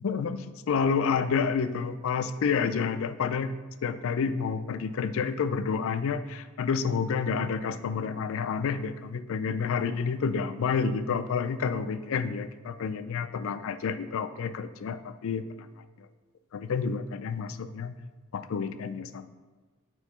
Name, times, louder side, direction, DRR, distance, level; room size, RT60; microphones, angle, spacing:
voice 1, 0.0-3.5 3.8-15.7 16.0-16.1 16.5-18.0 18.3-19.3, left 5 dB, 65° left, 11 dB, 0.4 m, -29 dB
6.2 x 2.9 x 5.6 m, 1.4 s
head